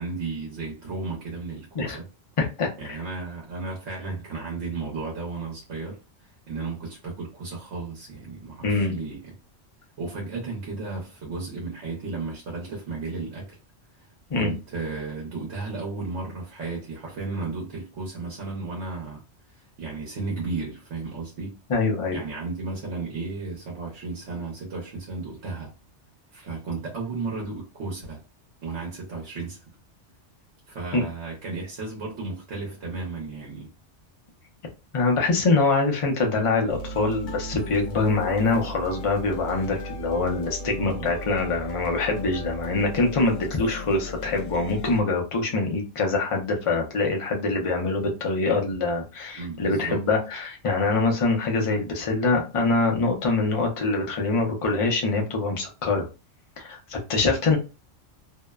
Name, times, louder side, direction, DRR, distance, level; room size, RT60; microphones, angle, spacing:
voice 1, 0.0-2.1 2.8-9.3 10.0-13.6 13.9-14.0 14.3-19.2 19.5-21.6 22.1-25.7 26.3-28.2 28.6-29.6 30.7-33.7 40.8-41.1 49.3-50.0, right 3 dB, 70° right, 1.0 m, -34 dB
voice 2, 2.4-3.0 8.6-8.9 14.3-14.5 21.7-22.2 30.9-31.0 34.9-56.1 56.6-57.6, left 3 dB, 40° left, 0.5 m, -24 dB
sound 1, 36.7-45.0, left 1 dB, 75° left, 0.9 m, -36 dB
2.7 x 2.1 x 2.2 m
omnidirectional pair, 1.3 m